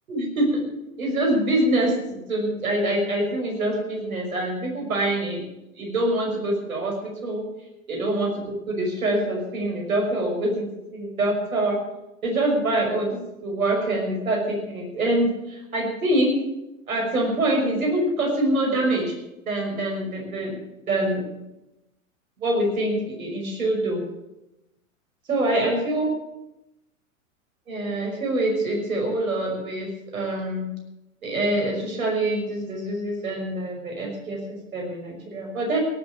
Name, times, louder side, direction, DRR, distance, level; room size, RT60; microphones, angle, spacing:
voice 1, 0.1-0.6 1.0-5.4 5.8-7.4 7.9-11.8 12.2-13.1 13.4-16.3 16.9-19.1 19.5-20.6 20.9-21.4 22.4-24.0 25.3-26.1 27.7-30.7 31.2-35.8, right 1 dB, 80° right, 1 dB, 6.0 m, -25 dB
17.5 x 8.1 x 8.7 m, 0.93 s
hypercardioid pair, 95°, 42 cm